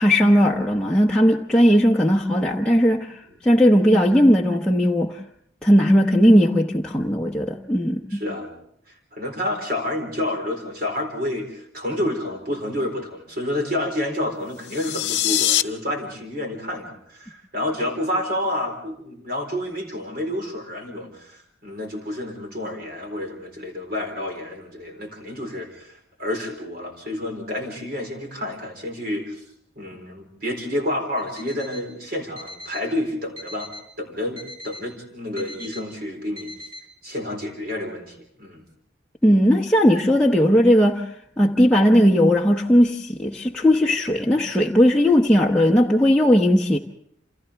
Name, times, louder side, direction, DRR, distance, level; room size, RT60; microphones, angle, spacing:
voice 1, 0.0-5.2 5.6-8.2 39.2-41.1 41.4-46.8, equal, 5° left, 0.9 m, -17 dB
voice 2, 8.1-8.5 9.1-29.4 29.8-33.7 34.0-36.5 37.0-38.6, left 1 dB, 50° right, 4.1 m, -29 dB
sound 1, 14.6-15.6, left 12 dB, 65° left, 0.7 m, -22 dB
Alarm, 31.2-31.9 32.4-32.9 33.4-33.9 34.4-34.9 35.4-35.9 36.4-36.9, left 1 dB, 25° right, 5.3 m, -40 dB
28.5 x 27.5 x 3.4 m
head